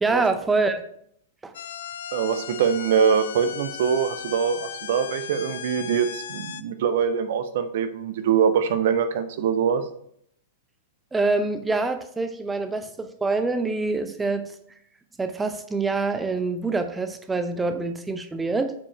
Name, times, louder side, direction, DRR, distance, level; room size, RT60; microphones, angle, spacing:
voice 1, 0.0-0.8 1.4-1.5 11.1-14.5 15.2-18.7, right 3 dB, 10° right, 8 dB, 0.6 m, -25 dB
sound 1, 1.5-6.6, left 10 dB, 60° left, 0.5 m, -37 dB
voice 2, 2.1-9.8, right 7 dB, 55° right, 11 dB, 0.7 m, -23 dB
8.4 x 5.0 x 4.3 m, 0.68 s
figure-of-eight pair, 100°, 0 cm